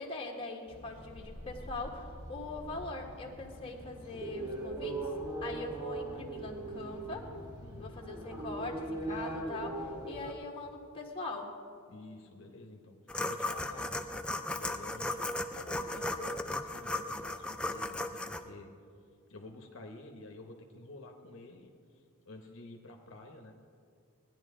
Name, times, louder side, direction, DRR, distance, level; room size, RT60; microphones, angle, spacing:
voice 1, 0.0-5.0 5.4-7.3 7.8-11.5, left 3 dB, 25° left, 0 dB, 1.4 m, -42 dB
sound 1, 0.7-10.3, right 2 dB, 15° right, 2.2 m, -41 dB
voice 2, 7.6-8.0 11.9-14.2 14.5-18.7 19.3-23.6, left 2 dB, 60° left, 3 dB, 0.9 m, -50 dB
sound 2, 13.1-18.4, left 2 dB, 5° left, 0.4 m, -36 dB
18.0 x 10.5 x 3.7 m, 2.2 s
head